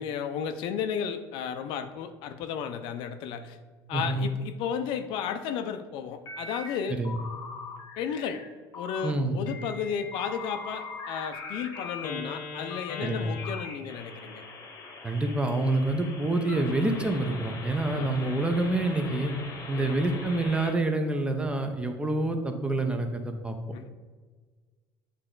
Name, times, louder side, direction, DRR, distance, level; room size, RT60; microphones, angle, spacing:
voice 1, 0.0-3.6 3.9-7.0 8.0-8.4 8.7-14.4 16.7-16.8 17.9-18.2 19.7-20.0 23.7-23.9, left 7 dB, 75° left, 9 dB, 0.5 m, -33 dB
voice 2, 3.9-4.3 7.0-7.1 9.0-9.4 13.0-13.4 15.0-19.3 19.7-23.6, right 2 dB, 10° right, 5 dB, 0.6 m, -27 dB
sound 1, 6.3-6.8 7.0-8.5 8.7-9.1 9.5-20.7, left 4 dB, 35° left, 0.9 m, -41 dB
8.1 x 3.3 x 3.8 m, 1.4 s
cardioid pair, 135°, 8 cm